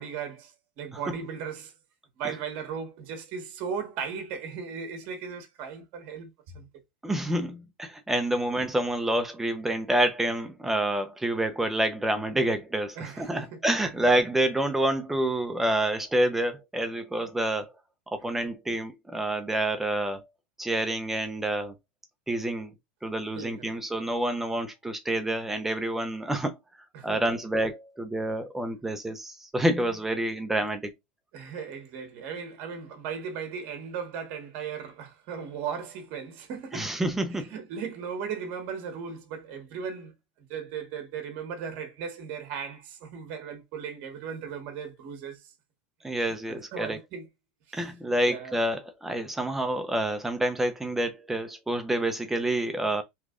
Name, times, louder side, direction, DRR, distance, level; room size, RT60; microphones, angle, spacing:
voice 1, 0.0-1.7 2.2-6.7 13.0-13.5 23.3-23.7 26.9-27.2 31.3-36.9 37.3-40.1 40.5-45.5 46.5-47.3 47.7-47.8 48.2-48.5, right 6 dB, 45° right, 1.1 m, -37 dB
voice 2, 7.0-17.7 18.1-20.2 20.6-21.7 22.3-22.7 23.0-26.6 27.0-30.9 36.7-37.5 46.0-47.0 47.7-53.0, right 1 dB, 5° right, 0.6 m, -28 dB
3.1 x 2.4 x 3.6 m
supercardioid pair, 150°, 6 cm